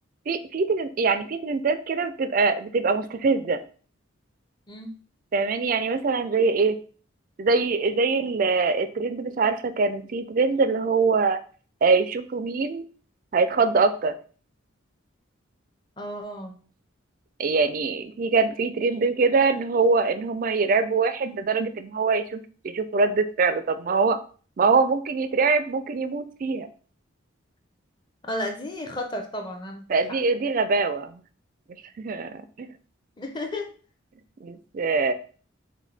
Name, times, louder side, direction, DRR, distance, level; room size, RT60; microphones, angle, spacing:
voice 1, 0.3-3.6 5.3-6.8 7.4-11.4 11.8-12.8 13.3-14.1 17.4-24.2 24.6-26.7 29.9-31.2 32.0-32.7 34.4-35.1, right 4 dB, 40° right, 11 dB, 0.3 m, -23 dB
voice 2, 16.0-16.5 28.2-30.2 33.2-33.7, left 1 dB, 20° left, 3 dB, 0.7 m, -33 dB
6.2 x 2.2 x 3.3 m, 0.41 s
head